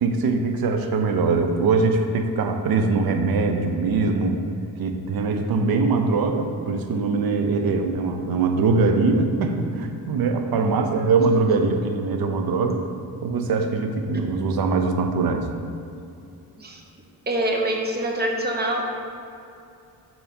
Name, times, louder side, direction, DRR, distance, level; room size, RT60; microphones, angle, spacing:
voice 1, 0.0-4.4 4.8-12.8 13.2-15.5, right 4 dB, 75° right, 5 dB, 0.6 m, -22 dB
voice 2, 17.3-18.8, right 1 dB, 25° right, 1 dB, 0.6 m, -25 dB
4.8 x 3.8 x 5.2 m, 2.5 s
wide cardioid pair, 140°, 36 cm